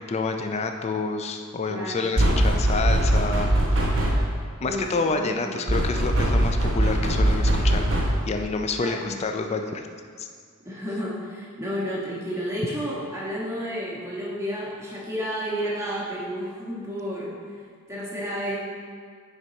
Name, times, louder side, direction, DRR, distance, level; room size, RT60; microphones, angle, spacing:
voice 1, 0.0-3.9 4.6-7.8 8.3-9.9 10.2-10.3, left 3 dB, 30° left, 5 dB, 0.3 m, -28 dB
voice 2, 1.7-2.3 4.6-5.7 8.8-9.2 10.6-17.3 17.9-18.6, equal, 15° right, -6 dB, 1.3 m, -31 dB
sound 1, 2.2-4.4 5.7-8.3, right 1 dB, 60° right, 1.2 m, -21 dB
6.6 x 4.6 x 4.3 m, 2.1 s
head